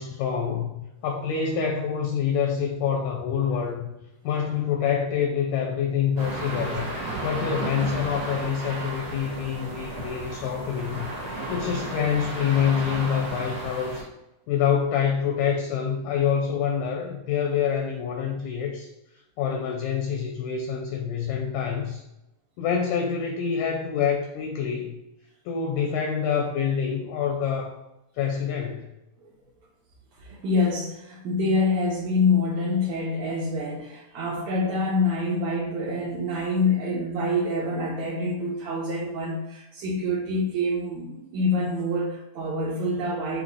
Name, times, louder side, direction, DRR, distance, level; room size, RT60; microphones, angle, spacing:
voice 1, 0.0-3.9 4.2-6.9 7.2-14.1 14.5-18.9 19.4-22.0 22.6-25.0 25.5-27.8 28.2-28.9, left 7 dB, 80° left, 1 dB, 1.8 m, -26 dB
sound 1, 6.2-14.0, right 2 dB, 50° right, 2.0 m, -33 dB
voice 2, 30.2-43.4, left 2 dB, 80° right, -6 dB, 1.6 m, -26 dB
5.9 x 2.1 x 3.5 m, 0.91 s
omnidirectional pair, 4.0 m